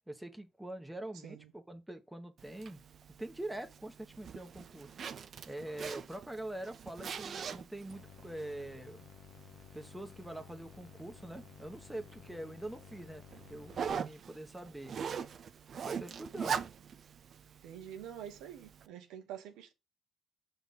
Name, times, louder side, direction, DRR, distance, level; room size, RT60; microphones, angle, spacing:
voice 1, 0.1-2.8 3.2-4.9 5.5-9.1 9.7-13.2 13.5-15.0 15.8-16.6, right 1 dB, 5° right, 1.3 m, -44 dB
Zipper (clothing), 2.4-18.9, right 7 dB, 55° right, 0.7 m, -43 dB
sound 1, 7.9-13.9, left 10 dB, 70° left, 0.9 m, -55 dB
voice 2, 17.6-19.7, right 9 dB, 85° right, 1.2 m, -47 dB
6.0 x 4.2 x 5.5 m
cardioid pair, 80°, 0 cm